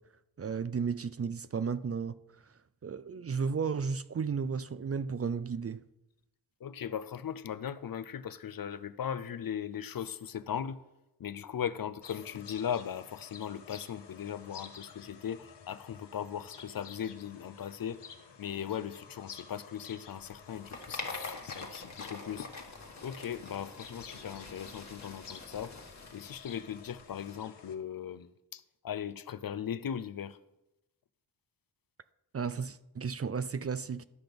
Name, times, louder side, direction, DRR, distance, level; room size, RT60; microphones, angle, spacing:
voice 1, 0.4-2.2 2.8-5.8 32.3-34.0, right 5 dB, 35° right, 0.5 m, -33 dB
voice 2, 6.6-10.8 11.2-18.0 18.4-22.5 23.0-25.8 26.1-30.4, left 9 dB, 55° left, 0.6 m, -38 dB
sound 1, 12.0-27.7, left 6 dB, 75° left, 1.2 m, -52 dB
sound 2, 20.2-27.4, left 3 dB, 40° left, 1.6 m, -45 dB
12.5 x 5.9 x 5.2 m
cardioid pair, 65°, 42 cm